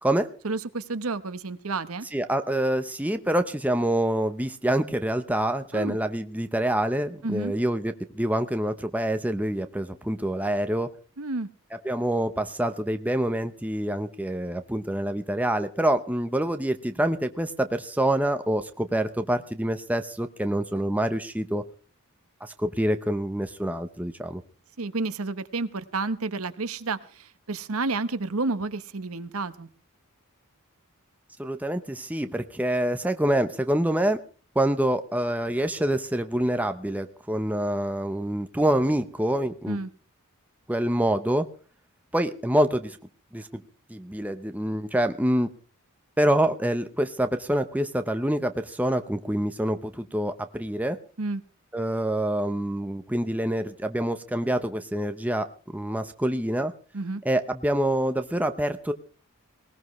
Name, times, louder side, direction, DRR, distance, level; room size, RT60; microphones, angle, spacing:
voice 1, 0.4-2.1 5.7-6.0 7.2-7.5 11.2-11.5 24.8-29.7 39.7-39.9 51.2-51.4 56.9-57.2, right 3 dB, 70° right, 12 dB, 1.0 m, -30 dB
voice 2, 2.1-10.9 11.8-21.6 22.4-24.4 31.4-34.2 34.5-39.8 40.7-41.5 42.1-43.0 43.3-43.6 43.9-45.5 46.2-51.0 51.7-56.7 57.2-58.9, right 1 dB, 5° right, 8 dB, 0.8 m, -26 dB
19.5 x 19.0 x 3.2 m, 0.38 s
head